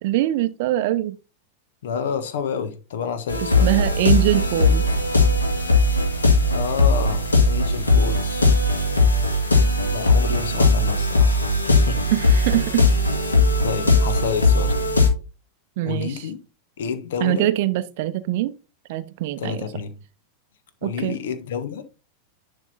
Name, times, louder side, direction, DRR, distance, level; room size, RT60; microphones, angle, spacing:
voice 1, 0.0-1.2 3.4-4.9 12.1-12.9 15.8-16.3 17.2-18.5 18.9-19.7 20.8-21.2, right 14 dB, 50° right, 0.6 m, -23 dB
voice 2, 1.8-3.7 6.5-8.5 9.9-12.0 13.6-14.7 15.8-16.4 16.8-17.5 19.4-20.0 20.8-21.8, left 7 dB, 60° left, 1.3 m, -29 dB
sound 1, 3.3-15.1, left 2 dB, 80° left, 1.8 m, -19 dB
10.5 x 3.6 x 4.1 m
figure-of-eight pair, 90°, 0 cm